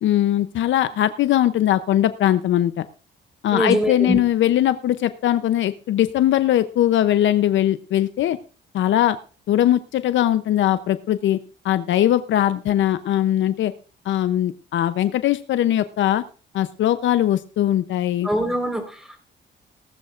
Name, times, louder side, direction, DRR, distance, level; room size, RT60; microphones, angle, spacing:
voice 1, 0.0-2.9 3.4-8.4 8.7-9.2 9.5-11.4 11.6-13.7 14.1-16.2 16.5-18.3, left 12 dB, 70° left, 12 dB, 0.7 m, -20 dB
voice 2, 3.5-4.2 18.2-19.2, equal, ahead, 4 dB, 4.3 m, -23 dB
18.5 x 12.5 x 2.5 m, 0.38 s
cardioid pair, 90°, 20 cm